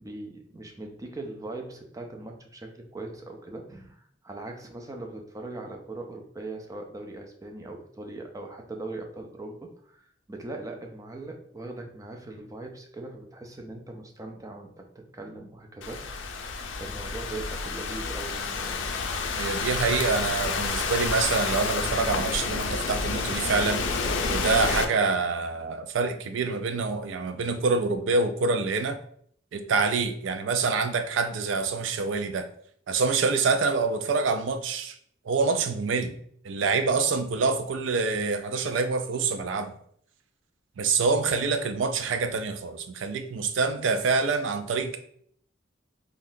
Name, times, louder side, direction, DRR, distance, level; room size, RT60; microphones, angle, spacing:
voice 1, 0.0-18.8, right 2 dB, 20° right, 3 dB, 0.4 m, -40 dB
Thunderstorm / Rain, 15.8-24.8, left 4 dB, 80° left, 0.4 m, -29 dB
voice 2, 19.3-23.8 24.3-29.0 29.5-32.4 32.9-35.0 35.3-36.2 36.4-39.7 40.8-45.0, right 4 dB, 85° right, 8 dB, 0.4 m, -26 dB
3.6 x 2.3 x 2.6 m, 0.63 s
head